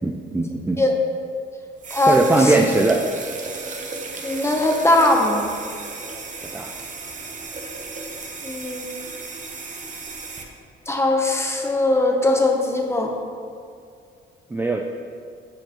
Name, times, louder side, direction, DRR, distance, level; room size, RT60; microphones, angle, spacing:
voice 1, 0.0-0.8 2.1-3.1 6.4-6.7 14.5-14.9, right 2 dB, 10° right, 2 dB, 0.3 m, -20 dB
sound 1, 1.8-10.4, right 4 dB, 40° right, 0.8 m, -35 dB
voice 2, 1.9-2.5 4.2-5.4 8.4-8.9 10.9-13.1, left 1 dB, 15° left, 2 dB, 0.8 m, -20 dB
7.7 x 4.8 x 2.9 m, 2.3 s
cardioid pair, 90°, 20 cm